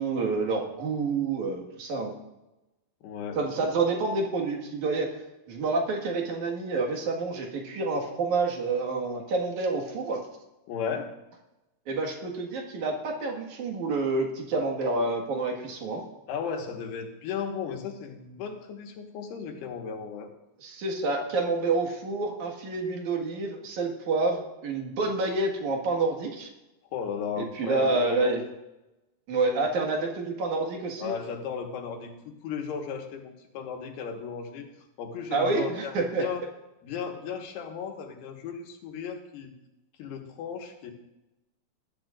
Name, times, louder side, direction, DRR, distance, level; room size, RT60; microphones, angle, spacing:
voice 1, 0.0-2.1 3.4-5.1 5.5-10.2 11.9-16.0 20.6-26.5 27.4-28.4 29.3-31.1 35.3-36.2, right 3 dB, 55° right, 1 dB, 2.7 m, -28 dB
voice 2, 3.0-3.4 10.7-11.1 16.3-20.3 26.9-28.3 31.0-34.7 35.0-36.4 36.8-39.5 40.0-40.9, left 6 dB, 80° left, 2 dB, 3.4 m, -35 dB
20.5 x 13.0 x 2.5 m, 0.96 s
omnidirectional pair, 4.7 m